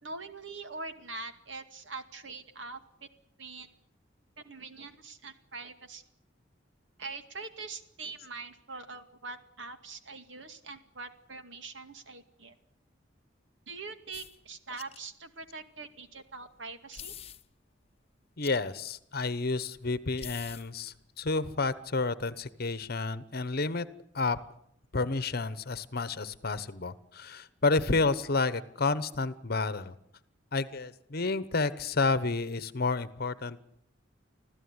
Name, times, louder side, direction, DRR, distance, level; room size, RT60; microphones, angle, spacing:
voice 1, 0.0-3.1 3.4-3.7 4.4-6.0 7.0-12.5 13.7-17.1, right 3 dB, 75° right, 8 dB, 2.3 m, -43 dB
sound 1, 14.1-14.4 14.8-15.0 15.3-15.4 16.9-17.4 18.4-18.6 20.2-20.7, left 9 dB, 35° left, 0.9 m, -44 dB
voice 2, 18.4-23.9 24.1-24.4 24.9-29.9 30.5-33.7, left 3 dB, 55° left, 15 dB, 1.0 m, -30 dB
26.0 x 15.5 x 9.7 m, 0.73 s
head